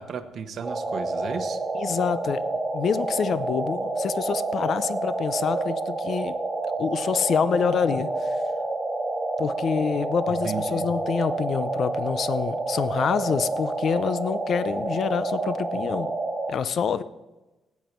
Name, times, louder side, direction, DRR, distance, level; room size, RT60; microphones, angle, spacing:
voice 1, 0.0-1.6 10.4-10.9, right 6 dB, 50° right, 8 dB, 1.0 m, -34 dB
sound 1, 0.6-16.5, right 2 dB, 20° right, 1.9 m, -29 dB
voice 2, 1.7-2.4 2.7-6.3 6.8-8.4 9.4-16.1 16.5-17.0, left 7 dB, 45° left, 14 dB, 0.5 m, -26 dB
15.0 x 9.4 x 4.5 m, 1.1 s
cardioid pair, 170°, 0 cm